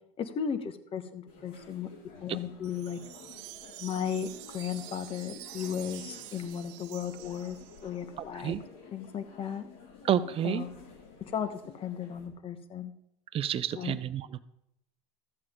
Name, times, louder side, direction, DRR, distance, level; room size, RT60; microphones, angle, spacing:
voice 1, 0.2-1.9 2.2-3.0 3.8-7.6 7.8-8.6 8.9-9.7 10.4-10.7 11.2-11.5 11.7-12.9 13.8-14.0, left 8 dB, 40° left, 10 dB, 1.2 m, -35 dB
sound 1, 1.3-12.3, left 5 dB, 70° left, 2.9 m, -52 dB
Wind chime, 2.6-8.0, right 17 dB, 80° right, 0.6 m, -47 dB
voice 2, 8.2-8.6 10.0-10.7 13.3-14.4, right 10 dB, 40° right, 14 dB, 0.6 m, -30 dB
13.5 x 7.6 x 3.7 m, 0.83 s
supercardioid pair, 105°, 14 cm